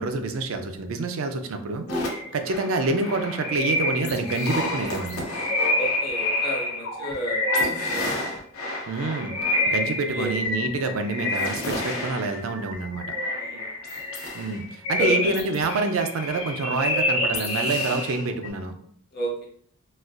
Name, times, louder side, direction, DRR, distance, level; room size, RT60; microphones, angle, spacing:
voice 1, 0.0-5.2 8.9-13.2 14.3-18.8, right 3 dB, 70° right, 6 dB, 0.4 m, -27 dB
sound 1, 1.9-18.5, left 2 dB, 85° left, 0.8 m, -28 dB
voice 2, 5.8-8.1 9.5-9.7 10.0-10.3 12.0-12.1 13.3-13.7 15.0-15.3 19.1-19.5, right 1 dB, 50° left, -1 dB, 0.9 m, -32 dB
4.1 x 2.2 x 2.4 m, 0.64 s
head